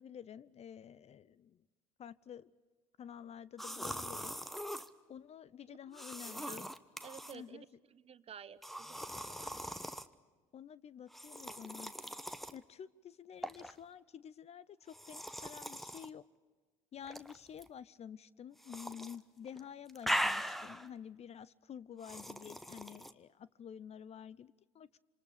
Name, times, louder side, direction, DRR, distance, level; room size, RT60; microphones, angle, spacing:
voice 1, 0.0-1.6 2.0-2.5 3.0-4.3 5.1-6.7 7.3-7.6 10.5-11.9 12.5-16.2 16.9-24.9, left 8 dB, 35° left, 20 dB, 0.7 m, -50 dB
sound 1, 3.6-4.9 5.9-7.4 8.6-10.1 11.1-12.6 13.4-13.7 14.9-16.1 17.0-17.7 18.6-19.2 19.5-20.9 22.0-23.1, equal, ahead, 1.1 m, -40 dB
voice 2, 5.7-6.7 7.0-9.8 21.9-22.0, right 8 dB, 35° right, 14 dB, 1.1 m, -54 dB
27.0 x 26.5 x 5.1 m, 1.3 s
hypercardioid pair, 65°, 18 cm